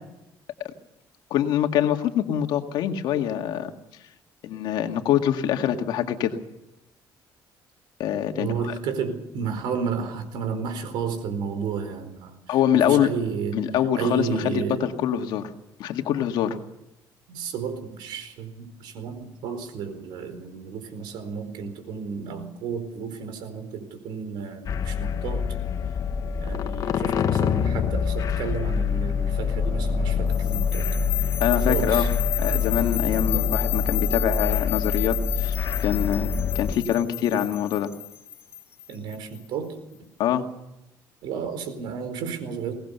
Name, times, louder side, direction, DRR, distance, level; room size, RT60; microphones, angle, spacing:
voice 1, 1.3-3.7 4.4-6.4 8.0-8.7 12.5-13.1 13.5-15.5 15.8-16.6 31.4-32.1 32.4-35.6 35.8-36.3 36.5-37.9 40.2-40.4, left 10 dB, 75° left, 5 dB, 2.0 m, -24 dB
voice 2, 8.3-12.6 12.8-13.6 13.9-14.9 17.3-25.5 26.4-30.9 31.7-32.1 33.3-33.5 38.9-40.1 41.2-42.7, right 6 dB, 80° right, 9 dB, 4.4 m, -32 dB
sound 1, 24.7-36.7, left 6 dB, 50° left, 1.4 m, -25 dB
sound 2, 30.3-39.4, left 11 dB, 30° left, 2.3 m, -32 dB
22.0 x 19.0 x 6.9 m, 0.90 s
cardioid pair, 125°, 8 cm